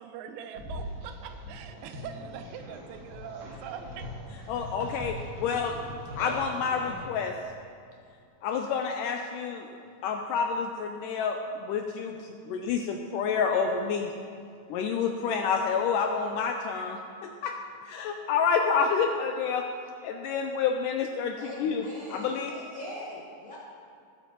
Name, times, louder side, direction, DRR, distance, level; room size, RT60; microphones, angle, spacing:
voice 1, 0.0-4.0, right 7 dB, 80° right, 7 dB, 2.3 m, -42 dB
sound 1, 0.5-7.1, left 1 dB, 65° right, 3.0 m, -41 dB
voice 2, 4.5-5.8 6.2-7.4 8.4-9.7 10.0-14.1 14.7-17.5 17.8-19.7 20.0-21.9 22.1-22.5, left 6 dB, 80° left, 4 dB, 2.0 m, -29 dB
voice 3, 21.4-23.6, equal, 50° left, -7 dB, 1.6 m, -41 dB
19.0 x 8.5 x 3.0 m, 2.3 s
omnidirectional pair, 4.2 m